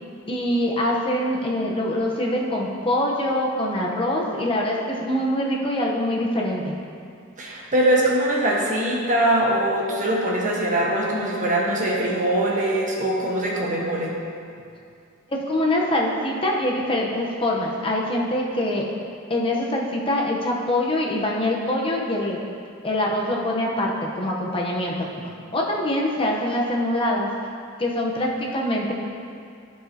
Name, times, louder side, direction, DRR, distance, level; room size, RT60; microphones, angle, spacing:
voice 1, 0.3-6.7 15.3-18.9 19.3-22.4 22.8-25.1 25.5-27.3 27.8-28.9, left 1 dB, 25° left, -2 dB, 0.9 m, -24 dB
voice 2, 7.4-14.1, right 1 dB, 40° right, -3 dB, 1.3 m, -22 dB
14.5 x 4.8 x 2.8 m, 2.4 s
head